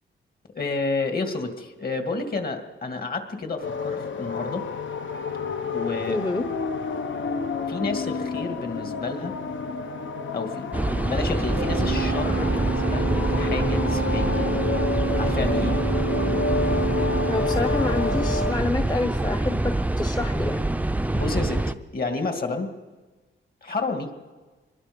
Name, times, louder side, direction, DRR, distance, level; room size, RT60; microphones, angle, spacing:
voice 1, 0.6-4.7 5.7-6.2 7.7-9.3 10.3-14.5 15.2-15.8 21.1-21.7 21.9-22.7 23.6-24.1, left 3 dB, 45° left, 5 dB, 2.3 m, -30 dB
sound 1, 3.6-18.5, left 4 dB, 65° left, 1.2 m, -30 dB
voice 2, 6.1-6.4 17.3-20.7, left 3 dB, 20° left, 7 dB, 0.9 m, -28 dB
sound 2, 10.7-21.7, right 1 dB, 5° right, 0.6 m, -25 dB
Organ, 11.6-18.1, right 10 dB, 65° right, 0.8 m, -31 dB
25.0 x 21.5 x 5.4 m, 1.3 s
wide cardioid pair, 115°, 21 cm